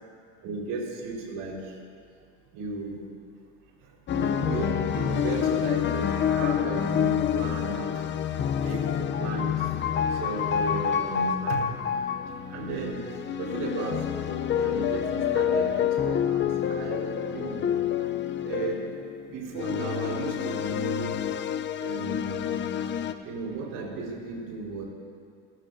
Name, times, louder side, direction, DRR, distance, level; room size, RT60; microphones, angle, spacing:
voice 1, 0.4-1.8 2.5-3.1 3.8-7.9 8.5-9.7 10.1-11.6 12.3-14.2 14.5-17.6 18.4-18.9 19.3-21.2 21.8-22.5 23.2-24.8, right 3 dB, 70° right, -2 dB, 5.0 m, -34 dB
sound 1, 4.1-23.1, left 9 dB, 35° left, 0.8 m, -28 dB
28.5 x 16.0 x 2.8 m, 2.2 s
cardioid pair, 130°, 33 cm